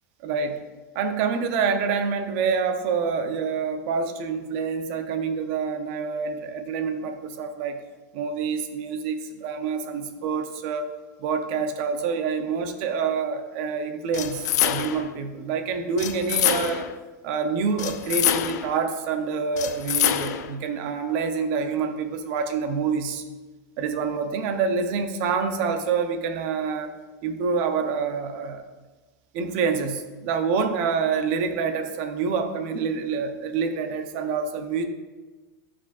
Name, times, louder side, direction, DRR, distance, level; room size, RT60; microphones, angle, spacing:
voice 1, 0.2-0.6 0.9-7.8 8.1-10.9 11.2-16.9 17.2-23.2 23.8-26.9 27.2-28.6 29.3-34.8, right 5 dB, 45° right, 7 dB, 0.7 m, -27 dB
sound 1, 14.1-15.1 16.0-17.0 17.8-18.8 19.6-20.5, left 11 dB, 75° left, 0.5 m, -25 dB
13.0 x 5.0 x 2.4 m, 1.2 s
supercardioid pair, 170°, 9 cm